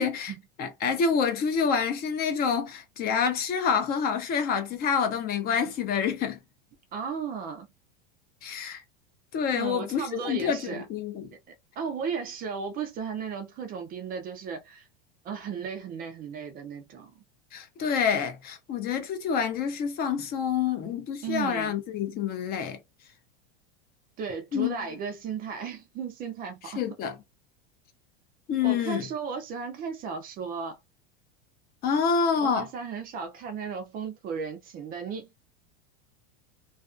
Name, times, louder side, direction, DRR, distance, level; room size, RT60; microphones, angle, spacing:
voice 1, 0.0-0.3 0.6-6.4 8.4-8.8 9.3-11.3 17.5-22.8 24.5-24.8 26.8-27.1 28.5-29.1 31.8-32.7, left 6 dB, 30° left, 0.5 m, -27 dB
voice 2, 6.9-7.7 9.5-10.9 11.8-14.9 15.2-17.1 21.2-21.8 24.2-26.8 28.6-30.8 32.4-35.4, right 6 dB, 30° right, 0.4 m, -35 dB
2.4 x 2.2 x 2.4 m
supercardioid pair, 130°, 30 cm